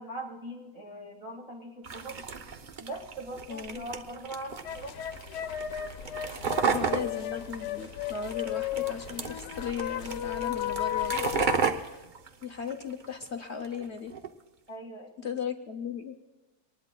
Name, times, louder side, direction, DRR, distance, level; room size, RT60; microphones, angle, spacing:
voice 1, 0.0-2.2 2.8-5.0 5.3-5.8 6.5-7.5 14.7-15.4, right 1 dB, 20° right, -2 dB, 1.7 m, -42 dB
sound 1, 1.8-13.3 13.6-14.3, right 5 dB, 85° right, 0.4 m, -34 dB
voice 2, 3.5-3.8 6.6-12.0 12.4-14.1 15.2-16.1, left 6 dB, 60° left, 6 dB, 0.7 m, -37 dB
sound 2, 4.6-11.7, left 11 dB, 75° left, 1.4 m, -34 dB
24.0 x 19.0 x 2.2 m, 1.2 s
omnidirectional pair, 1.9 m